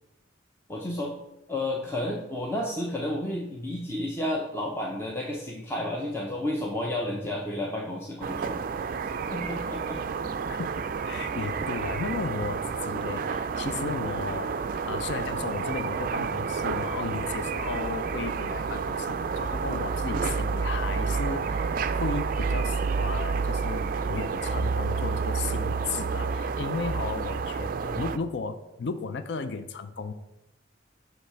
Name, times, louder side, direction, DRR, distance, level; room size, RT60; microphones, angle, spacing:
voice 1, 0.7-1.1 1.5-8.6 9.3-10.0 13.8-14.0 27.7-28.0, left 1 dB, 15° left, -2 dB, 0.6 m, -31 dB
sound 1, 8.2-28.2, right 5 dB, 50° right, 0.3 m, -30 dB
voice 2, 10.2-10.7 11.0-30.1, left 4 dB, 65° left, 10 dB, 0.4 m, -35 dB
8.1 x 3.1 x 5.7 m, 0.92 s
head